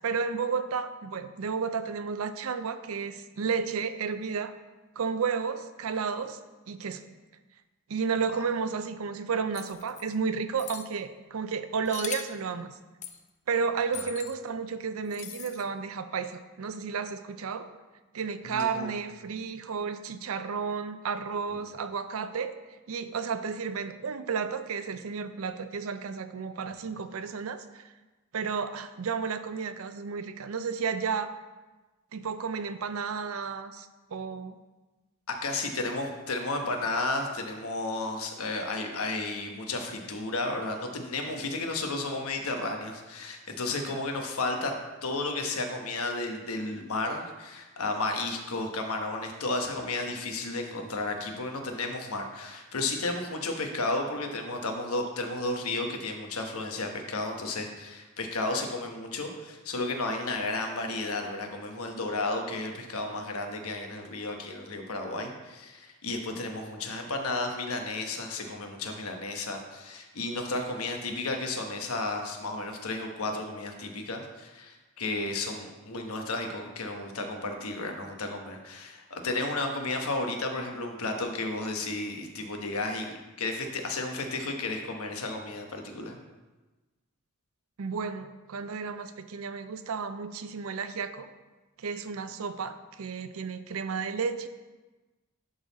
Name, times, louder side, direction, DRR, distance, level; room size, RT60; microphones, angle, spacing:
voice 1, 0.0-4.5 5.0-6.4 6.7-7.0 7.9-12.8 13.5-17.7 18.1-22.5 22.9-27.9 28.3-31.3 32.1-34.6 87.8-91.3 91.8-94.5, right 5 dB, 70° right, 11 dB, 0.5 m, -32 dB
sound 1, 9.5-10.0 10.6-10.9 11.9-12.4 13.0-13.2 13.9-14.3 15.1-15.6, left 9 dB, 30° left, 0.4 m, -40 dB
voice 2, 18.4-18.9 35.3-86.2, left 2 dB, 80° left, 3 dB, 1.1 m, -33 dB
11.0 x 4.0 x 4.0 m, 1.2 s
head